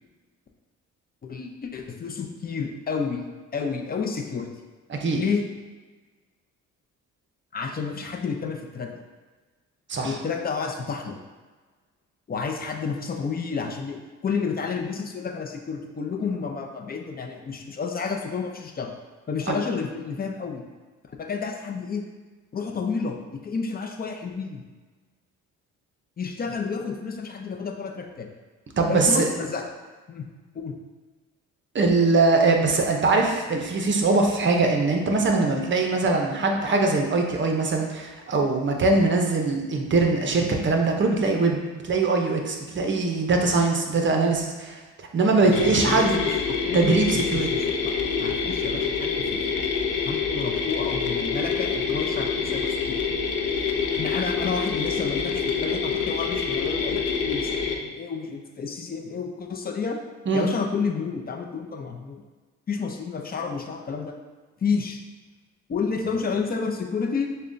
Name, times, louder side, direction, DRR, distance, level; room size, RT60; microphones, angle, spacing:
voice 1, 1.2-3.2 3.5-4.5 5.2-5.5 7.5-9.0 10.0-11.2 12.3-18.9 19.3-20.6 21.2-22.0 22.5-24.6 26.2-28.3 28.9-29.7 30.1-30.3 30.5-30.7 45.4-47.2 47.5-49.6 50.0-53.0 53.9-60.0 60.3-62.2 62.7-64.1 64.6-65.0 65.7-67.3, left 5 dB, 30° left, 3 dB, 0.5 m, -30 dB
voice 2, 4.9-5.2 9.9-10.1 19.5-19.6 28.8-29.3 31.7-44.8 45.1-46.2 46.7-47.5 60.3-60.5, right 3 dB, 40° right, 2 dB, 0.7 m, -22 dB
sound 1, 45.5-57.7, left 5 dB, 75° left, 0.5 m, -26 dB
6.6 x 2.2 x 2.6 m, 1.4 s
cardioid pair, 90°, 30 cm